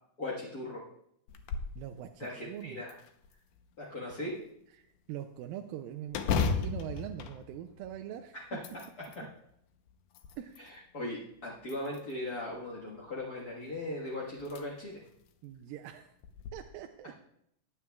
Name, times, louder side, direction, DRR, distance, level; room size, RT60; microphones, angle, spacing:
voice 1, 0.2-0.8 2.2-2.9 3.8-4.4 10.9-15.0, left 1 dB, 55° left, -5 dB, 1.0 m, -38 dB
sound 1, 1.3-1.8 2.2-2.3 2.9-3.7 6.1-8.1 8.5-9.2 9.9-10.7 11.6-12.3 13.8-13.9 14.4-14.6 15.1-15.2 16.2-16.5, left 5 dB, 75° left, 2.0 m, -34 dB
voice 2, 1.8-2.8 4.0-4.1 4.7-8.6 10.4-10.8 15.4-16.1 16.5-17.1, right 11 dB, 80° right, 5 dB, 2.3 m, -43 dB
17.0 x 9.8 x 2.3 m, 0.73 s
omnidirectional pair, 4.2 m